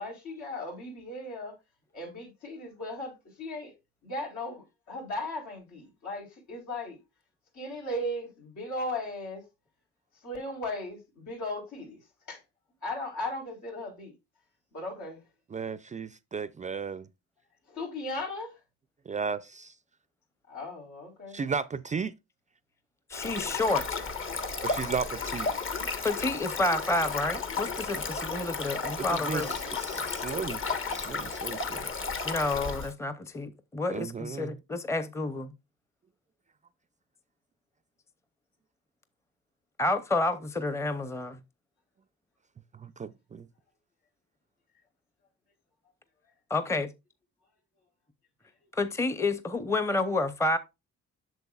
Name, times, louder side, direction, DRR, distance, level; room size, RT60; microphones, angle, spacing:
voice 1, 0.0-1.5 1.9-3.7 4.0-7.0 7.5-9.4 10.2-12.0 12.3-12.4 12.8-14.1 14.7-15.2 17.7-18.6 20.5-21.4, left 1 dB, 75° left, 3.8 m, -37 dB
voice 2, 15.5-17.1 19.1-19.7 21.3-22.1 24.6-25.5 29.0-30.6 30.9-31.9 33.9-34.5 42.7-43.5, right 5 dB, 25° right, 0.4 m, -35 dB
Stream, 23.1-32.9, left 4 dB, 45° left, 1.3 m, -33 dB
voice 3, 23.1-24.0 26.0-29.5 32.2-35.5 39.8-41.4 46.5-46.9 48.7-50.6, left 2 dB, 10° left, 0.7 m, -29 dB
8.1 x 6.7 x 2.3 m
cardioid pair, 90°, 30 cm